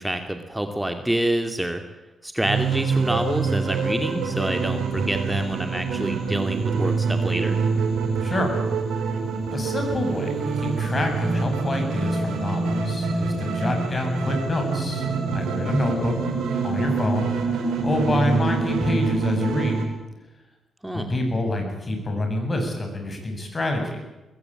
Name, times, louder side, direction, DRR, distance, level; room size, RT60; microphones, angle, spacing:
voice 1, 0.0-1.8 2.2-7.6 20.8-21.1, right 1 dB, 10° right, 6 dB, 2.4 m, -27 dB
sound 1, 2.4-19.8, right 4 dB, 70° right, 4.4 m, -25 dB
voice 2, 8.2-8.5 9.5-15.0 15.3-16.2 16.6-17.3 17.7-19.8 20.9-24.0, left 1 dB, 35° left, 4 dB, 8.0 m, -27 dB
20.5 x 16.5 x 8.9 m, 1.1 s
hypercardioid pair, 40°, 0 cm